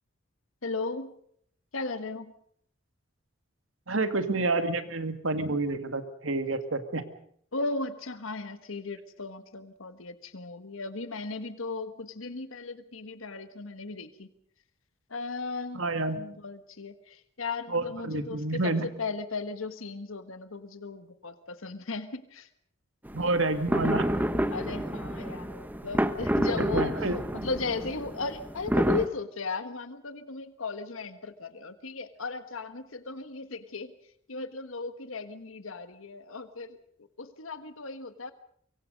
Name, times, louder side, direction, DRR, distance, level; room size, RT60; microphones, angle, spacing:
voice 1, 0.6-1.1 1.7-2.3 7.5-14.3 15.1-15.8 16.1-18.7 19.0-22.5 24.5-27.0 27.3-33.9 34.3-38.3, left 3 dB, 90° left, 10 dB, 1.5 m, -36 dB
voice 2, 3.9-7.1 15.7-16.2 17.7-18.9 23.1-24.1 26.6-27.2, right 2 dB, 80° right, 9 dB, 2.1 m, -29 dB
sound 1, 23.1-29.1, equal, 10° right, 0.9 m, -29 dB
24.0 x 23.5 x 5.3 m, 0.64 s
head